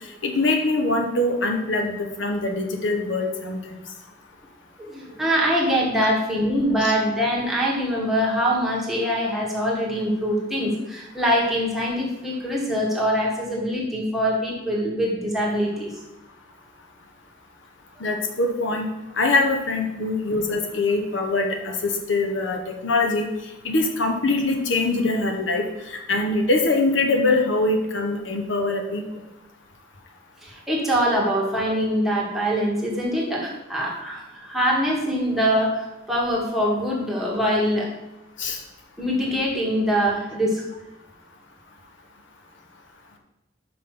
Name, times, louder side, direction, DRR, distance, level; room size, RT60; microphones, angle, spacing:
voice 1, 0.2-3.8 6.0-6.1 6.8-6.9 18.0-18.9 19.2-23.3 23.6-29.0 38.4-38.6, left 2 dB, 75° left, 3 dB, 1.1 m, -23 dB
voice 2, 4.8-15.9 30.4-37.9 39.0-40.6, equal, ahead, -4 dB, 1.6 m, -23 dB
6.1 x 5.5 x 5.9 m, 0.98 s
head